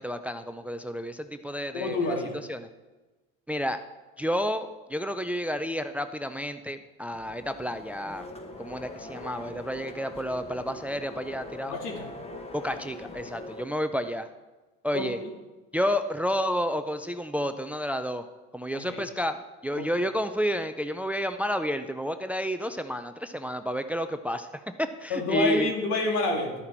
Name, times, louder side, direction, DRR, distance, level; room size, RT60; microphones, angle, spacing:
voice 1, 0.0-2.2 2.5-2.7 3.5-3.8 4.2-8.3 8.6-11.8 12.5-14.3 14.8-15.2 15.7-18.3 18.5-25.7, equal, 5° right, 10 dB, 0.4 m, -30 dB
voice 2, 1.7-2.4 11.7-12.1 14.9-15.3 18.7-19.0 19.8-19.9 25.1-26.6, left 2 dB, 70° left, 1 dB, 2.5 m, -28 dB
sound 1, 7.1-13.7, left 2 dB, 20° left, 1.3 m, -42 dB
12.5 x 9.9 x 4.4 m, 1.2 s
supercardioid pair, 120°, 31 cm